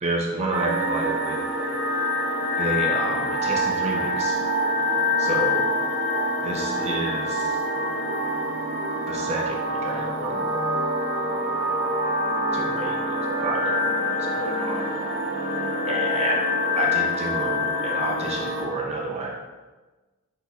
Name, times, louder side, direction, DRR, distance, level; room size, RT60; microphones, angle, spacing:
voice 1, 0.0-1.4 2.6-4.4 5.2-5.6 6.4-7.6 9.1-10.7 12.5-14.9 15.9-16.4 16.8-19.4, right 2 dB, 30° right, -1 dB, 0.4 m, -30 dB
sound 1, 0.5-18.6, left 1 dB, 55° right, 0.8 m, -25 dB
4.1 x 4.0 x 2.4 m, 1.2 s
head